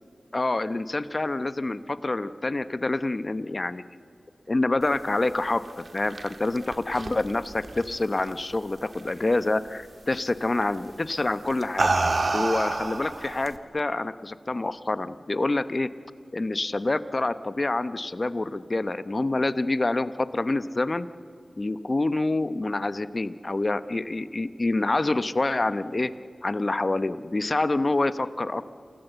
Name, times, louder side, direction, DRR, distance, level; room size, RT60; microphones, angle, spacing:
voice 1, 0.3-3.8 4.5-11.9 12.3-15.9 16.3-21.1 21.6-26.1 26.4-28.6, left 2 dB, 40° left, 13 dB, 0.8 m, -27 dB
sound 1, 5.7-8.6 8.9-9.4 10.6-10.8 11.4-13.6, right 3 dB, 55° right, 1.7 m, -28 dB
28.5 x 18.0 x 8.0 m, 2.5 s
cardioid pair, 55°, 0 cm